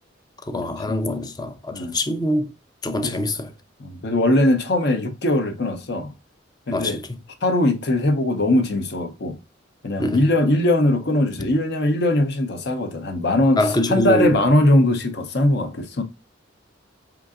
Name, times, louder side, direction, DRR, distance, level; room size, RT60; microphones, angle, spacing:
voice 1, 0.4-2.5 2.8-3.5 6.7-7.2 10.0-10.2 13.6-14.4, left 1 dB, 20° left, 0.5 m, -24 dB
voice 2, 3.8-6.1 6.7-7.0 7.4-9.4 9.8-16.0, left 1 dB, 60° left, 0.7 m, -20 dB
4.6 x 3.7 x 2.4 m
head